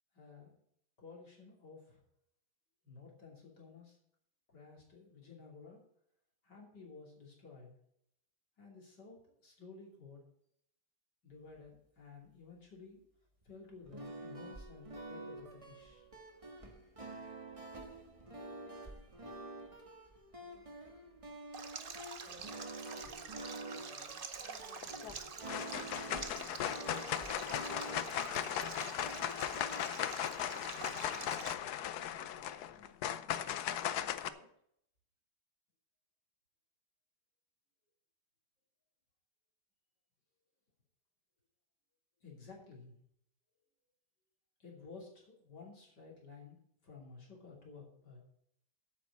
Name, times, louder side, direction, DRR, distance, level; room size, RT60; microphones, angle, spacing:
voice 1, 0.1-0.6 1.0-2.0 2.8-4.0 4.5-5.8 6.4-7.8 8.6-10.2 11.2-13.0 13.5-16.0 42.2-43.0 44.6-46.6 46.8-48.2, left 4 dB, 50° left, -2 dB, 3.6 m, -54 dB
sound 1, 13.8-29.8, right 2 dB, 20° right, 1.3 m, -48 dB
Stream, 21.5-31.5, right 5 dB, 75° right, 0.5 m, -47 dB
voice 2, 22.1-22.6 23.0-26.7 27.2-29.3 30.1-31.8 32.1-32.9 34.0-34.5, equal, 45° right, -1 dB, 4.9 m, -61 dB
sound 2, 24.8-25.1 25.5-34.3, left 10 dB, 70° left, 0.9 m, -37 dB
8.4 x 8.3 x 8.4 m, 0.72 s
omnidirectional pair, 2.4 m